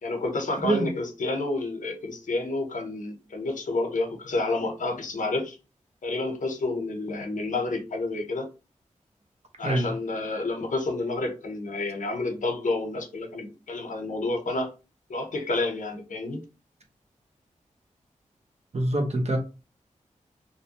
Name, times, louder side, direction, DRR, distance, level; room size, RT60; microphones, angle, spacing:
voice 1, 0.0-5.6 6.0-8.5 9.6-14.7 15.1-16.4, left 2 dB, 75° left, 0.8 m, -29 dB
voice 2, 18.7-19.4, right 1 dB, 55° right, 0.8 m, -24 dB
2.7 x 2.2 x 2.9 m
cardioid pair, 40°, 13 cm